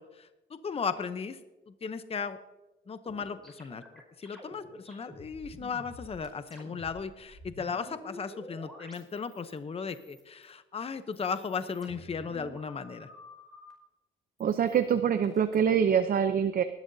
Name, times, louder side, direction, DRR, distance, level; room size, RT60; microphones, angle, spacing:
voice 1, 0.0-1.4 1.7-2.4 2.9-3.8 4.2-13.1, left 5 dB, 30° left, 11 dB, 0.8 m, -36 dB
sound 1, 3.1-9.6 9.9-10.5 11.0-13.7 14.4-15.6, equal, ahead, 5.2 m, -50 dB
voice 2, 14.4-16.6, right 8 dB, 45° right, 9 dB, 0.7 m, -25 dB
19.5 x 11.5 x 2.7 m, 1.0 s
cardioid pair, 90°, 20 cm